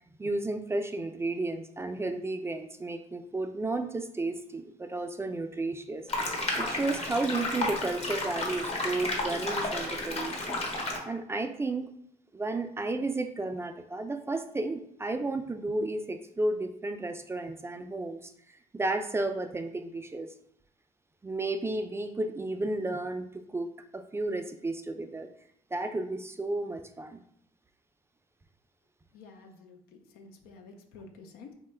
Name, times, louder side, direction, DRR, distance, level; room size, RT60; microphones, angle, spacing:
voice 1, 0.2-6.1 6.6-10.6 11.1-11.9 12.3-18.3 18.7-20.3 21.2-25.3 25.7-27.2, right 2 dB, 15° right, 8 dB, 0.3 m, -33 dB
sound 1, 6.1-11.0, left 2 dB, 45° left, 0.9 m, -32 dB
voice 2, 29.1-31.5, left 4 dB, 85° left, 4 dB, 0.5 m, -50 dB
2.9 x 2.2 x 3.3 m, 0.69 s
supercardioid pair, 65°, 15 cm